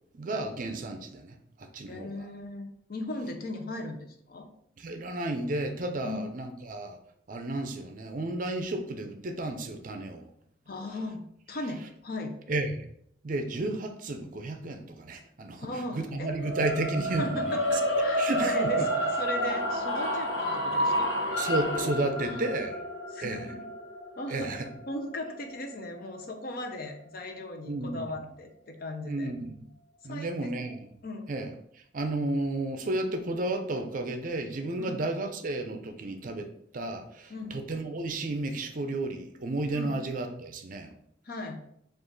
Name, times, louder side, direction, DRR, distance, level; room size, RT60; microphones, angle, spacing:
voice 1, 0.1-2.3 4.8-7.0 7.3-10.3 12.5-12.9 13.2-17.8 18.2-18.9 21.4-22.8 23.2-23.5 24.3-24.7 27.7-28.0 29.1-29.7 30.0-30.9 31.3-40.9, right 2 dB, 45° right, 7 dB, 0.5 m, -32 dB
voice 2, 1.9-4.5 6.0-6.2 10.7-12.4 15.6-16.3 17.2-21.1 22.2-22.4 23.1-23.6 24.2-24.5 24.9-29.3 30.1-30.5 31.0-31.3 34.8-35.0 37.3-37.6 39.7-39.9 41.3-41.6, left 2 dB, 50° left, 4 dB, 0.6 m, -38 dB
sound 1, 16.4-26.6, equal, 90° left, 1.1 m, -30 dB
5.0 x 2.4 x 3.8 m, 0.70 s
head